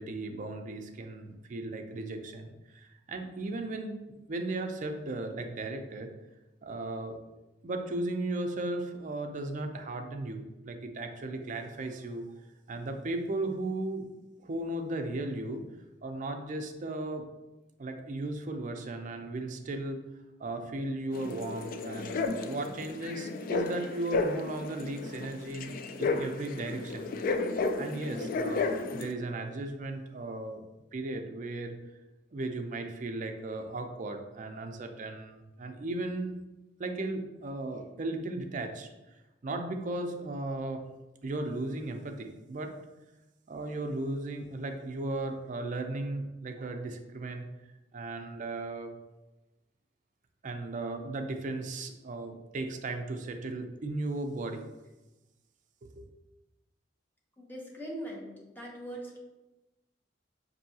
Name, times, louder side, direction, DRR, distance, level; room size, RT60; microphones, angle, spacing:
voice 1, 0.0-4.0 4.3-6.1 6.6-7.2 7.6-12.3 12.7-14.1 14.4-15.6 16.0-17.2 17.8-20.0 20.4-25.7 26.0-27.1 27.8-30.6 30.9-31.8 32.3-36.4 36.8-38.9 39.4-40.8 41.2-42.7 43.5-47.4 47.9-48.9 50.4-54.6 55.8-56.1, right 2 dB, 45° right, 5 dB, 0.4 m, -36 dB
sound 1, 21.1-29.1, left 3 dB, 50° left, 0.3 m, -33 dB
voice 2, 57.4-59.2, right 1 dB, 10° left, -2 dB, 0.7 m, -41 dB
5.4 x 2.7 x 2.7 m, 1.1 s
head